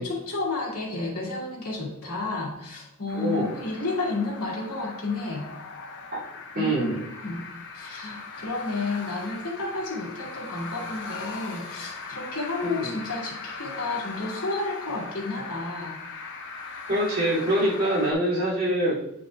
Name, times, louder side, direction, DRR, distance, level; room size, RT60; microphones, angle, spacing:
voice 1, 0.0-5.5 6.5-6.7 7.2-7.5 7.7-16.0, left 3 dB, 75° left, -4 dB, 2.2 m, -31 dB
sound 1, 3.1-18.1, left 4 dB, 55° left, 0.9 m, -39 dB
voice 2, 3.1-3.5 6.1-6.2 6.5-7.1 12.6-12.9 16.9-18.9, right 1 dB, 45° right, -8 dB, 2.6 m, -25 dB
9.2 x 5.3 x 2.3 m, 0.82 s
head